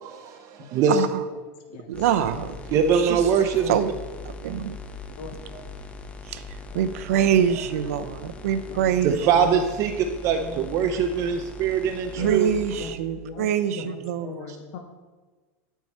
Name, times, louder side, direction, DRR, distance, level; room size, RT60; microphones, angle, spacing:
voice 1, 0.0-1.0 2.7-3.7 5.5-5.6 9.0-12.5 14.2-14.6, right 7 dB, 40° right, 0.5 m, -23 dB
voice 2, 0.9-1.2 1.9-2.5 2.9-3.2 3.7-3.9 4.4-4.7 6.3-6.4 6.7-9.6 12.2-14.3, right 9 dB, 85° right, 0.6 m, -24 dB
sound 1, 1.9-12.9, left 3 dB, 15° left, 0.5 m, -41 dB
voice 3, 6.7-7.3 8.7-8.9 9.2-9.3 10.3-10.9 12.2-12.4 12.8-12.9 13.2-13.5 13.7-14.8, left 6 dB, 60° left, 0.8 m, -39 dB
9.6 x 4.6 x 4.2 m
supercardioid pair, 135°, 8 cm